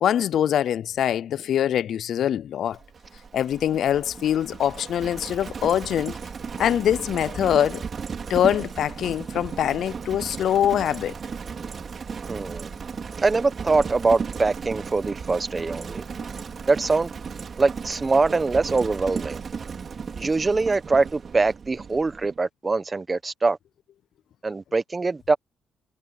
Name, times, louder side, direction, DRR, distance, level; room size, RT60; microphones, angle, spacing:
voice 1, 0.0-2.8 3.3-6.2 6.6-7.8 8.3-11.1, left 10 dB, 70° left, 0.4 m, -23 dB
Livestock farm animals working animals, 2.7-22.4, right 6 dB, 45° right, 5.2 m, -35 dB
voice 2, 12.3-12.7 13.2-16.0 16.7-17.1 17.6-19.4 20.2-23.6 24.4-25.4, right 3 dB, 25° right, 1.3 m, -23 dB
cardioid pair, 90°, 0 cm